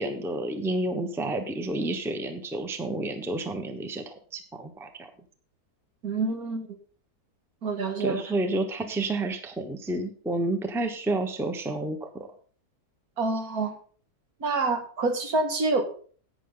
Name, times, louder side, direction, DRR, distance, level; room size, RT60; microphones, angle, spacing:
voice 1, 0.0-4.9 8.0-12.3, right 2 dB, ahead, 6 dB, 0.9 m, -30 dB
voice 2, 6.0-6.7 7.6-8.2 13.2-13.7 14.4-15.8, right 3 dB, 65° right, 5 dB, 2.1 m, -27 dB
11.5 x 8.9 x 3.9 m, 0.43 s
omnidirectional pair, 1.7 m